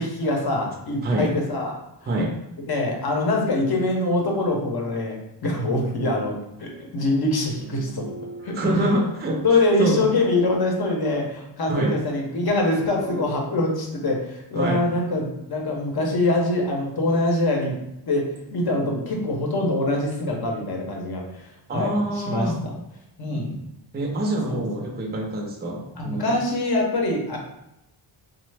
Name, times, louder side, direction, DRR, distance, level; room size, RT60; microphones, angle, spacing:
voice 1, 0.0-1.7 2.6-8.1 8.4-9.0 9.4-17.8 18.1-22.5 23.2-23.5 24.5-24.9 26.0-27.4, left 2 dB, 50° left, 0 dB, 0.8 m, -24 dB
voice 2, 1.0-1.3 2.1-2.4 8.5-9.4 9.8-10.0 11.7-12.0 14.6-14.9 21.7-22.6 23.3-23.4 23.9-26.4, right 1 dB, 20° right, 0 dB, 0.5 m, -25 dB
sound 1, 6.7-7.0 7.6-8.9 12.6-13.8, right 4 dB, 85° right, 0.6 m, -41 dB
3.1 x 2.0 x 3.3 m, 0.86 s
wide cardioid pair, 120°, 47 cm